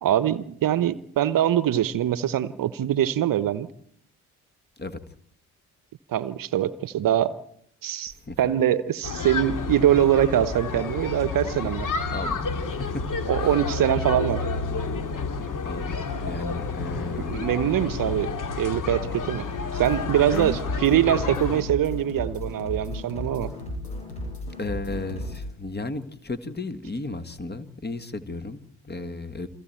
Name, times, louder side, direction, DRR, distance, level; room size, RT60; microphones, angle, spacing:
voice 1, 0.0-3.7 6.1-7.4 7.8-11.9 13.3-14.4 17.3-19.4 19.7-23.5, right 11 dB, 50° right, 17 dB, 1.0 m, -23 dB
sound 1, 9.0-21.6, left 4 dB, 45° left, 2.5 m, -30 dB
voice 2, 12.1-13.0 13.3-13.5 15.6-17.6 20.3-20.6 24.6-29.5, left 3 dB, 20° left, 11 dB, 1.8 m, -34 dB
sound 2, 19.7-25.4, left 1 dB, 85° left, 7.7 m, -34 dB
29.0 x 23.0 x 4.5 m, 0.69 s
figure-of-eight pair, 40°, 44 cm